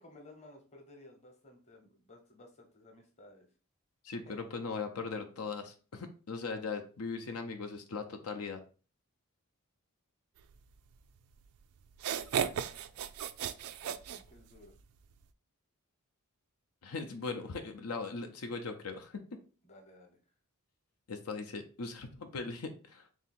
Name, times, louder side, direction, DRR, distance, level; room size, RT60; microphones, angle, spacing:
voice 1, 0.0-3.5 4.2-4.5 12.1-13.1 13.6-14.0 14.3-14.7 19.6-20.2, left 1 dB, 30° left, 3 dB, 0.9 m, -56 dB
voice 2, 4.0-8.6 16.8-19.4 21.1-23.1, left 4 dB, 85° left, 5 dB, 0.6 m, -39 dB
sound 1, 11.4-11.5 11.9-14.8, right 8 dB, 80° right, 0.4 m, -35 dB
3.6 x 2.7 x 4.2 m, 0.37 s
head